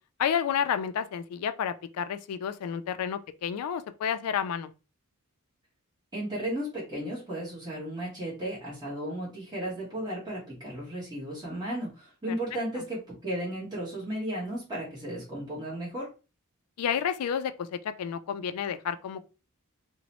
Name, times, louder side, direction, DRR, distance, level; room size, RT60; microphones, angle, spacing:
voice 1, 0.2-4.7 16.8-19.3, left 8 dB, 85° left, 0.3 m, -30 dB
voice 2, 6.1-16.1, right 1 dB, 20° right, 1.2 m, -34 dB
2.9 x 2.0 x 2.9 m
head